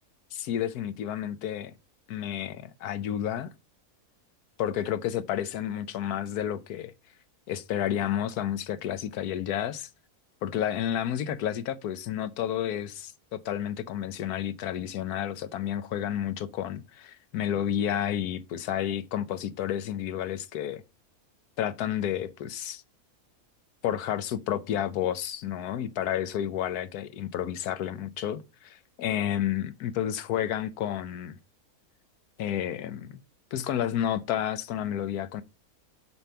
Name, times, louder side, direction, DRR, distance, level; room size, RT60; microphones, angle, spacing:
voice 1, 0.3-1.7 2.1-3.5 4.6-6.9 7.5-9.9 10.4-20.8 21.6-22.8 23.8-31.4 32.4-33.2 33.5-35.4, left 10 dB, 85° left, 1.2 m, -31 dB
7.0 x 5.4 x 5.7 m
omnidirectional pair, 1.6 m